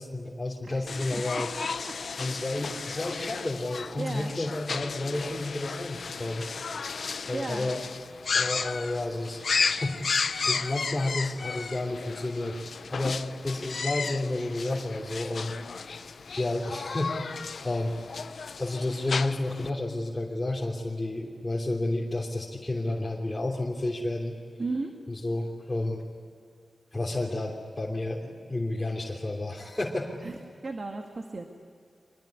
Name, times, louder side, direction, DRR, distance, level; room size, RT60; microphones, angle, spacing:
voice 1, 0.0-1.5 2.2-6.5 7.3-7.8 8.3-15.6 16.4-17.3 17.6-18.0 18.6-24.3 25.1-26.0 26.9-30.2, left 2 dB, 20° left, -3 dB, 3.2 m, -31 dB
sound 1, 0.9-19.7, left 5 dB, 75° left, 0.8 m, -34 dB
voice 2, 1.1-1.4 2.5-2.6 4.0-4.3 7.3-7.7 24.6-24.9 30.2-30.4 30.6-31.5, right 3 dB, 50° right, 3 dB, 2.0 m, -34 dB
25.0 x 21.0 x 9.7 m, 2.2 s
cardioid pair, 70°, 0 cm